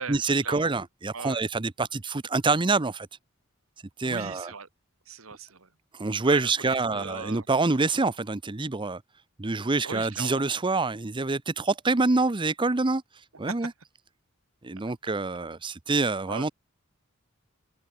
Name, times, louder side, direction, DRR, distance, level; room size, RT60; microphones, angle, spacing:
voice 1, 0.1-3.1 4.0-4.5 5.9-9.0 9.4-13.0 13.4-13.7 14.6-16.5, right 3 dB, 25° right, 0.7 m, -26 dB
voice 2, 4.0-4.7 5.1-5.7 6.2-7.5 9.8-10.4 13.5-13.6 16.3-16.5, right 5 dB, 75° right, 2.0 m, -38 dB
head